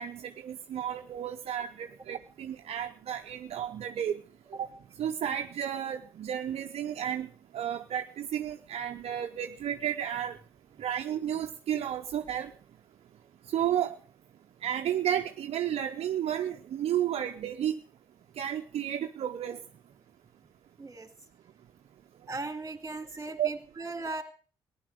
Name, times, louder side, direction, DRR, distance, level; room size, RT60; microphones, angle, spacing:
voice 1, 0.0-4.2 4.5-4.7 5.0-10.4 10.8-12.5 13.5-14.0 14.6-17.8 18.4-19.6 23.4-23.5, right 10 dB, 65° right, 6 dB, 0.8 m, -32 dB
voice 2, 20.8-21.1 22.3-24.2, right 3 dB, 30° right, 8 dB, 2.7 m, -37 dB
15.0 x 11.0 x 6.4 m, 0.40 s
supercardioid pair, 50°, 11 cm